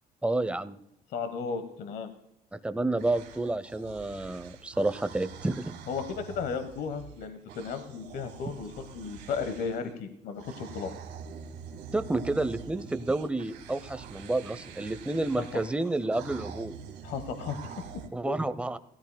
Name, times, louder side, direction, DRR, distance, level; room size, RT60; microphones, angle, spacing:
voice 1, 0.2-0.8 2.5-5.8 11.9-16.7 18.1-18.8, right 2 dB, 5° right, 13 dB, 0.6 m, -30 dB
voice 2, 1.1-2.1 5.9-10.9 15.4-15.5 17.0-18.4, left 5 dB, 65° left, 9 dB, 1.2 m, -35 dB
sound 1, 3.0-9.9 10.4-18.1, right 7 dB, 80° right, 1.4 m, -45 dB
16.5 x 14.0 x 2.2 m, 0.79 s
cardioid pair, 110°, 17 cm